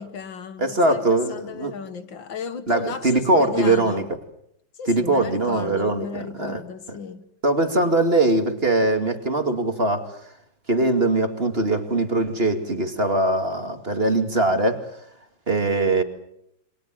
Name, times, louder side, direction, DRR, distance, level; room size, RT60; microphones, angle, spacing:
voice 1, 0.0-4.1 4.7-7.3, left 6 dB, 65° left, 2.0 m, -35 dB
voice 2, 0.6-1.7 2.7-4.0 4.9-6.6 6.9-7.0 7.4-10.3 10.7-14.9 15.5-16.0, right 2 dB, 30° right, 2.5 m, -21 dB
28.5 x 25.0 x 7.6 m
omnidirectional pair, 2.3 m